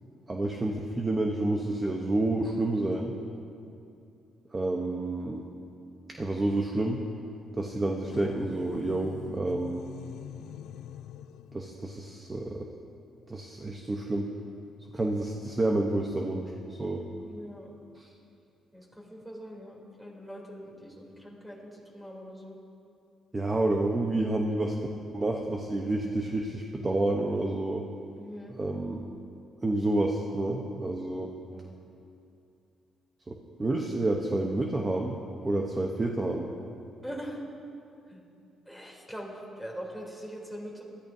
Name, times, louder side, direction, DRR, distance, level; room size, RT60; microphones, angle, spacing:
voice 1, 0.3-3.1 4.5-5.4 6.2-7.0 7.6-9.8 11.5-12.7 13.3-14.3 14.9-17.0 18.0-18.1 23.3-24.8 25.1-27.8 28.5-29.0 29.6-31.3 33.3-36.5, right 2 dB, 25° right, 1 dB, 1.0 m, -29 dB
sound 1, 8.1-11.6, left 10 dB, 80° left, 0.4 m, -43 dB
voice 2, 17.2-17.7 18.7-22.6 28.2-28.5 31.1-31.2 31.5-31.7 37.0-37.4 38.1-38.2 38.6-40.8, equal, 5° right, -2 dB, 3.4 m, -42 dB
21.5 x 13.0 x 2.8 m, 2.6 s
cardioid pair, 90°, 0 cm